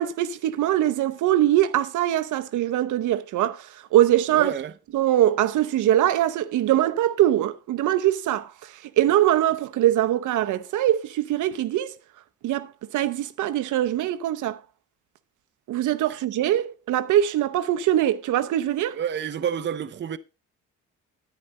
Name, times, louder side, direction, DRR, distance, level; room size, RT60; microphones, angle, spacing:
voice 1, 0.0-4.5 4.9-11.9 12.4-14.6 15.7-19.0, right 12 dB, 80° right, 0.8 m, -22 dB
voice 2, 4.3-4.7 18.9-20.2, right 9 dB, 40° right, 0.6 m, -28 dB
9.8 x 9.2 x 4.0 m
cardioid pair, 90°, 30 cm